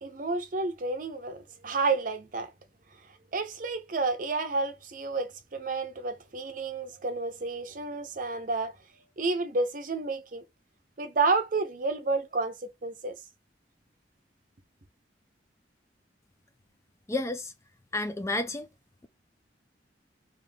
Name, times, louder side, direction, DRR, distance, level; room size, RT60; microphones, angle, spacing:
voice 1, 0.0-2.5 3.3-8.8 9.2-10.4 11.0-13.2, right 3 dB, 45° right, 0.7 m, -30 dB
voice 2, 17.1-17.5 17.9-18.7, left 2 dB, 15° left, 0.3 m, -30 dB
3.4 x 2.6 x 3.5 m
head